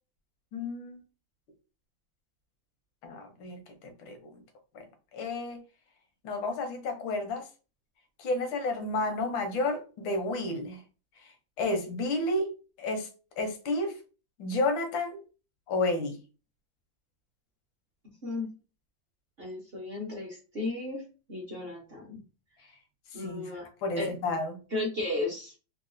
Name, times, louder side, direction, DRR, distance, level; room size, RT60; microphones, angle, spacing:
voice 1, 0.5-1.0 3.0-4.3 4.7-4.8 5.1-5.6 6.2-7.5 8.2-10.8 11.2-11.3 11.6-12.5 12.8-13.1 13.4-13.9 14.4-15.2 15.7-16.2 23.1-24.6, left 2 dB, 85° left, 1.6 m, -31 dB
voice 2, 18.2-18.5 19.4-21.0 21.3-22.2 23.1-23.7 24.0-24.1 24.7-25.5, left 2 dB, 50° right, 0.7 m, -34 dB
3.9 x 2.1 x 2.5 m
omnidirectional pair, 2.1 m